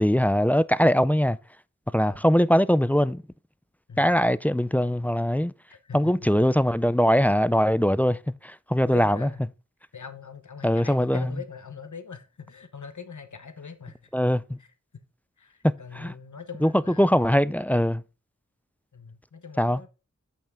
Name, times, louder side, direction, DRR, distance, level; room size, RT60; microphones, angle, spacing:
voice 1, 0.0-1.4 1.9-3.2 4.0-5.5 5.9-9.3 10.6-11.3 14.1-14.4 16.0-16.1 16.6-16.7 17.0-18.0 19.6-19.8, equal, 5° left, 0.3 m, -21 dB
voice 2, 5.7-6.1 8.9-9.4 9.9-14.3 14.6-14.7 15.4-17.2 18.9-19.9, left 6 dB, 75° left, 1.0 m, -42 dB
8.7 x 5.6 x 3.6 m
wide cardioid pair, 55°, 30 cm